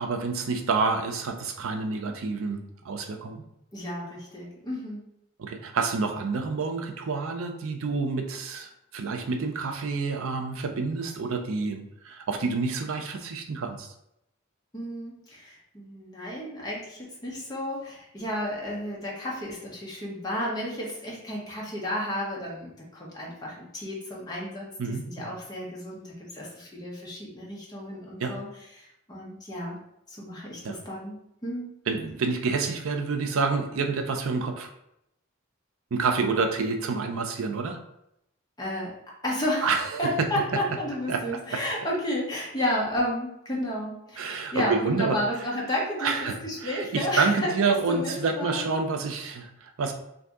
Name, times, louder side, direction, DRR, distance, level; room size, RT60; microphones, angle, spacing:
voice 1, 0.0-2.6 2.8-3.4 5.4-13.9 24.8-25.0 28.2-28.3 30.6-30.8 31.9-34.7 35.9-37.8 39.6-40.3 41.1-41.6 44.2-45.2 46.0-49.9, right 4 dB, 80° right, 6 dB, 0.5 m, -28 dB
voice 2, 3.7-5.0 14.7-28.5 28.8-29.8 30.1-31.2 31.4-31.7 38.6-38.9 39.2-48.6, left 1 dB, 20° left, -4 dB, 0.8 m, -32 dB
2.6 x 2.6 x 3.5 m, 0.80 s
head